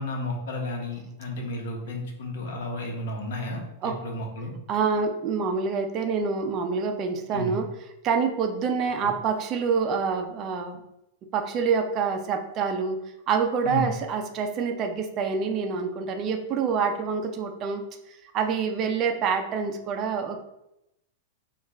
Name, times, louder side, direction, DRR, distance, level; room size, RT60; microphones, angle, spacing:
voice 1, 0.0-3.6 4.0-4.5 7.3-7.6 9.0-9.1 13.6-13.9, left 1 dB, 75° left, 1 dB, 0.9 m, -32 dB
voice 2, 4.7-7.7 8.0-10.8 11.3-20.4, right 5 dB, 35° right, 5 dB, 0.5 m, -27 dB
3.5 x 2.4 x 3.1 m, 0.84 s
supercardioid pair, 140°, 0 cm